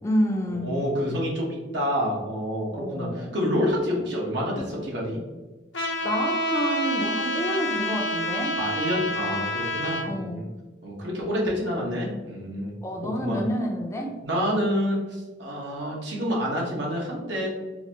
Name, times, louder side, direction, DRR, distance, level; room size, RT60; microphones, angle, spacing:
voice 1, 0.0-0.8 2.7-3.4 6.0-8.6 10.0-10.6 12.8-14.1, equal, 15° left, 1 dB, 0.5 m, -28 dB
voice 2, 0.6-5.2 8.5-10.4 10.8-12.7 13.0-13.4 14.2-17.5, equal, 80° right, -3 dB, 1.1 m, -28 dB
Trumpet, 5.7-10.1, left 1 dB, 90° left, 0.7 m, -28 dB
4.0 x 2.5 x 2.9 m, 1.2 s
head